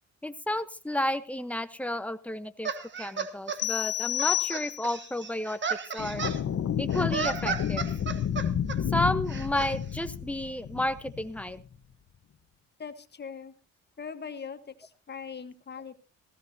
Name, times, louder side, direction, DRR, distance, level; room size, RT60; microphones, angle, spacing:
voice 1, 0.2-2.7 3.0-5.6 5.9-6.2 6.8-7.9 8.9-11.6, left 1 dB, 5° left, 10 dB, 1.1 m, -31 dB
sound 1, 2.6-3.6 4.2-6.4 6.9-8.8 9.3-9.7, right 5 dB, 40° right, 1.4 m, -34 dB
sound 2, 3.6-5.1, left 14 dB, 75° left, 0.8 m, -30 dB
sound 3, 6.0-11.6, left 8 dB, 55° left, 1.3 m, -31 dB
voice 2, 12.8-13.5 14.0-16.0, left 6 dB, 35° left, 9 dB, 1.5 m, -41 dB
18.0 x 15.5 x 2.8 m, 0.33 s
cardioid pair, 90°, 30 cm